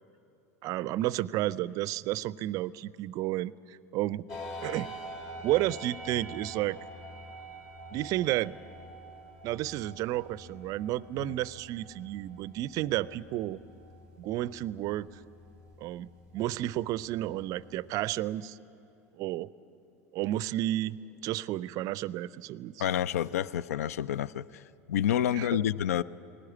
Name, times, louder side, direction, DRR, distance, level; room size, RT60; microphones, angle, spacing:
voice 1, 0.6-4.3 4.6-4.9 5.4-6.8 7.9-8.5 9.4-13.6 14.2-15.1 15.8-16.1 16.3-18.6 19.2-19.5 20.1-21.0 21.2-22.8 25.3-25.6, right 15 dB, 45° right, 20 dB, 0.4 m, -31 dB
sound 1, 4.3-17.9, equal, 40° left, 2.8 m, -46 dB
voice 2, 22.8-24.6 24.9-26.0, left 10 dB, 70° left, 20 dB, 0.4 m, -29 dB
19.0 x 17.5 x 9.7 m, 2.8 s
figure-of-eight pair, 85°, 8 cm